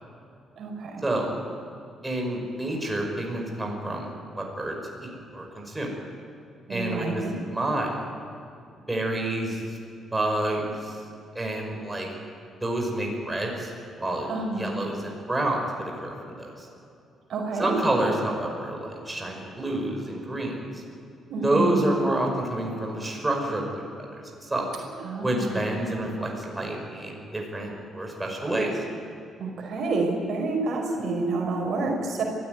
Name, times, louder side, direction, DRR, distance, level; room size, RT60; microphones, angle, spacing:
voice 1, 0.6-1.1 6.7-7.3 14.3-14.7 17.3-17.7 21.3-21.8 25.0-25.7 29.4-32.2, right 3 dB, 65° right, 1 dB, 5.1 m, -28 dB
voice 2, 2.0-5.9 6.7-7.9 8.9-9.6 10.1-11.0 11.3-12.1 12.6-13.7 14.0-14.3 14.5-16.7 17.6-20.8 21.4-24.7 25.2-28.8, right 1 dB, 15° right, 0 dB, 5.6 m, -28 dB
22.5 x 14.5 x 9.6 m, 2.6 s
cardioid pair, 90°, 0 cm